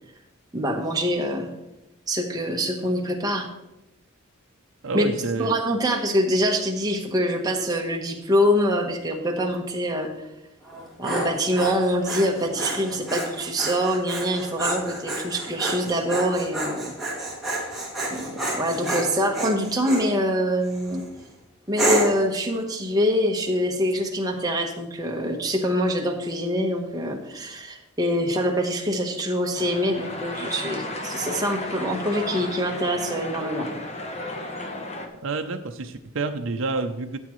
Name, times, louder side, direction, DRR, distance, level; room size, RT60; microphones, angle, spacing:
voice 1, 0.5-1.5 2.1-3.5 4.9-5.1 5.4-10.1 11.0-16.9 18.1-21.0 21.7-33.7, equal, 20° right, 1 dB, 1.2 m, -25 dB
voice 2, 4.8-5.5 35.2-37.2, right 3 dB, 65° right, 5 dB, 0.6 m, -28 dB
Dog, 10.7-20.1 20.6-21.1 21.8-22.3, right 1 dB, ahead, 2.4 m, -29 dB
sound 1, 29.5-35.1, left 1 dB, 30° left, 1.0 m, -33 dB
13.5 x 7.6 x 3.1 m, 0.90 s
head